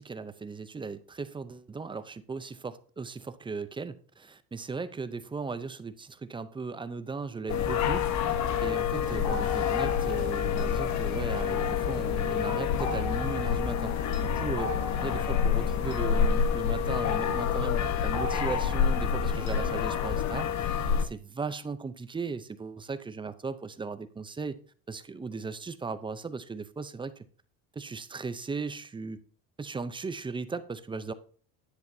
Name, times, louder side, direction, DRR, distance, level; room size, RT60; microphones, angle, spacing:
voice 1, 0.0-8.1 8.6-13.9 14.2-14.8 15.0-24.6 24.9-27.3 27.8-29.2 29.6-31.1, right 4 dB, 15° right, 0.5 m, -37 dB
sound 1, 7.5-21.0, left 7 dB, 45° left, 1.0 m, -28 dB
sound 2, 9.2-12.0 12.8-17.3 18.1-19.9, left 2 dB, 70° left, 3.5 m, -40 dB
10.5 x 7.9 x 2.7 m
cardioid pair, 125°, 40 cm